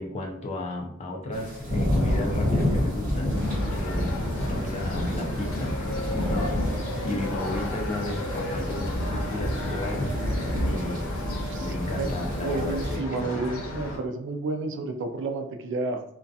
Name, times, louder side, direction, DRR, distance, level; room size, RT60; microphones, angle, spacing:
voice 1, 0.0-3.4 3.7-6.6 7.0-10.2 10.6-11.1 11.6-13.6, left 1 dB, 30° left, 1 dB, 0.4 m, -34 dB
sound 1, 1.3-13.0, left 1 dB, 40° right, 1.0 m, -29 dB
sound 2, 3.3-14.0, left 1 dB, 85° left, 0.7 m, -34 dB
voice 2, 11.5-12.1 12.4-16.1, right 3 dB, 60° right, 5 dB, 0.3 m, -31 dB
2.3 x 2.2 x 2.6 m, 0.72 s
head